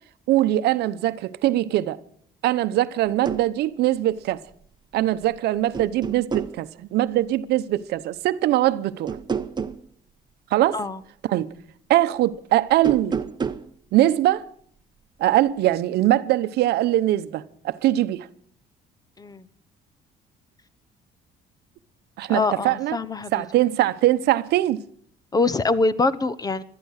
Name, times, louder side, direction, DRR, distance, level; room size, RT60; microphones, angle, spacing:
voice 1, 0.3-2.0 2.4-4.4 4.9-9.2 10.5-10.8 11.2-11.5 11.9-13.2 13.9-14.5 15.2-18.3 22.2-23.0 23.3-24.8, right 14 dB, 75° right, 0.8 m, -22 dB
sound 1, 3.0-3.5 5.0-5.4 5.7-6.6 9.1-9.8 12.7-13.7, right 5 dB, 25° right, 0.9 m, -29 dB
voice 2, 22.3-23.4 25.3-26.6, left 3 dB, 20° left, 0.9 m, -24 dB
18.0 x 12.5 x 6.5 m
cardioid pair, 110°, 17 cm